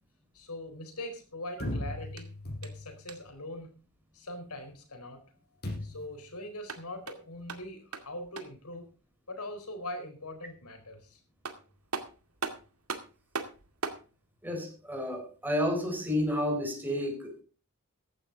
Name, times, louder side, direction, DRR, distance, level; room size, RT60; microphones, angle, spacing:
voice 1, 0.3-2.3 2.6-3.7 4.1-5.2 5.8-8.9 9.3-11.2, left 1 dB, 85° left, 7 dB, 4.5 m, -42 dB
sound 1, 1.6-3.1 5.6-6.2, left 1 dB, 45° left, 5.7 m, -37 dB
sound 2, 2.1-3.4 6.5-8.7 11.0-11.1 11.4-14.1, right 4 dB, 70° right, 2.2 m, -40 dB
voice 2, 14.4-17.4, left 1 dB, 10° right, 1 dB, 4.4 m, -31 dB
15.0 x 11.5 x 4.0 m, 0.35 s
head